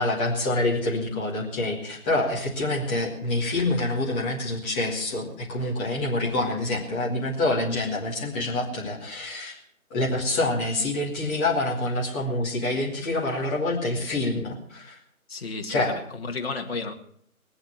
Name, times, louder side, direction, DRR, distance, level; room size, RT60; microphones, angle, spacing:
voice 1, 0.0-9.6 9.9-15.0 15.7-16.0, left 2 dB, 10° left, -5 dB, 1.6 m, -26 dB
voice 2, 15.3-16.9, left 4 dB, 45° left, 3 dB, 1.9 m, -33 dB
21.0 x 8.0 x 6.3 m, 0.64 s
figure-of-eight pair, 165°, 43 cm